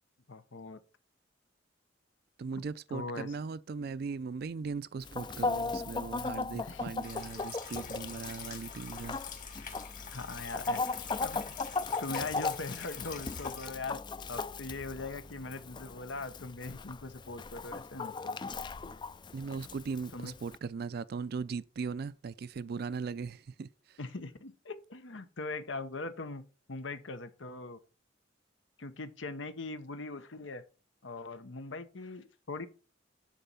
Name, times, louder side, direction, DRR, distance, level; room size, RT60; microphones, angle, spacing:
voice 1, 0.3-0.8 2.5-2.6 2.9-3.4 6.5-6.9 10.1-10.9 11.2-11.5 12.0-14.0 14.3-18.4 20.1-20.3 24.0-26.4 26.7-27.8 28.8-30.6 31.0-32.7, left 3 dB, 85° left, 1.0 m, -41 dB
voice 2, 2.4-9.2 19.3-24.0, right 5 dB, 55° right, 0.4 m, -38 dB
Chicken rooster, 5.0-20.6, left 4 dB, 25° left, 0.3 m, -38 dB
sound 1, 7.0-13.8 14.4-14.5 14.9-15.0 15.3-15.4, left 7 dB, 45° left, 2.0 m, -46 dB
10.5 x 4.1 x 5.6 m
head